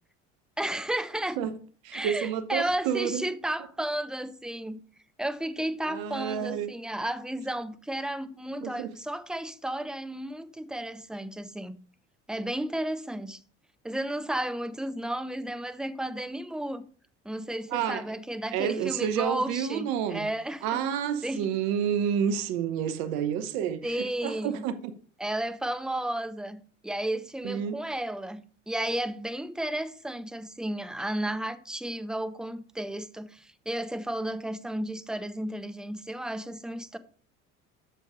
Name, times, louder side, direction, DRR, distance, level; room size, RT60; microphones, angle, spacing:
voice 1, 0.6-1.4 1.9-4.8 5.2-11.8 12.3-13.4 13.8-16.8 17.2-20.8 21.2-21.5 23.8-24.6 25.2-37.0, right 1 dB, ahead, 0.8 m, -33 dB
voice 2, 1.8-3.2 5.9-6.7 8.6-8.9 17.7-18.0 18.5-20.3 20.6-24.9 27.4-27.8, right 8 dB, 70° right, 1.0 m, -29 dB
7.9 x 6.5 x 5.0 m
hypercardioid pair, 70°, 36 cm